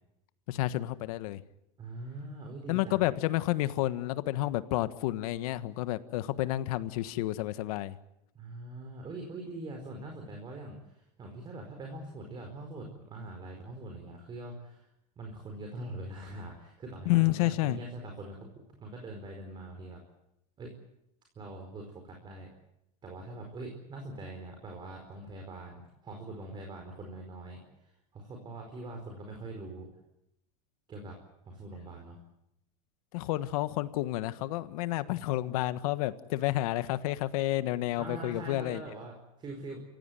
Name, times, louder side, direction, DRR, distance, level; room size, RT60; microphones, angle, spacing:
voice 1, 0.5-1.4 2.7-8.0 17.0-17.8 33.1-38.8, left 16 dB, 65° left, 13 dB, 1.4 m, -30 dB
voice 2, 1.8-3.1 8.3-14.9 15.2-18.5 18.8-20.0 20.6-20.7 21.3-22.5 23.0-29.9 30.9-31.2 31.4-32.2 38.0-39.8, right 2 dB, 25° right, 2 dB, 4.7 m, -43 dB
28.0 x 16.0 x 9.2 m, 0.86 s
supercardioid pair, 145°, 20 cm